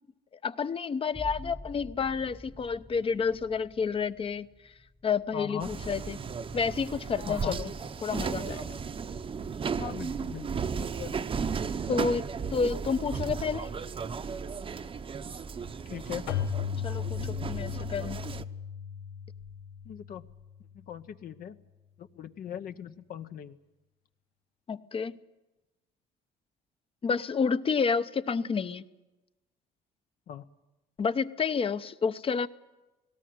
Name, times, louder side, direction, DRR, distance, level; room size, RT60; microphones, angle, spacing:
voice 1, 0.4-4.5 5.0-6.2 6.5-7.7 8.0-8.8 11.9-13.7 16.8-18.2 24.7-25.2 27.0-28.8 31.0-32.5, left 5 dB, 35° left, 13 dB, 0.8 m, -30 dB
sound 1, 1.1-6.6 7.0-7.7, left 1 dB, 5° left, 1.0 m, -48 dB
voice 2, 5.3-5.7 7.3-7.6 9.8-10.5 10.8-11.2 15.9-16.4 19.8-20.2 20.7-21.6 22.0-23.6 30.3-30.5, left 9 dB, 60° left, 9 dB, 0.9 m, -39 dB
sound 2, 5.6-18.4, right 6 dB, 30° right, 0.9 m, -35 dB
Keyboard (musical), 16.3-20.8, left 8 dB, 90° left, 1.3 m, -36 dB
18.5 x 17.5 x 9.4 m, 1.1 s
cardioid pair, 110°, 17 cm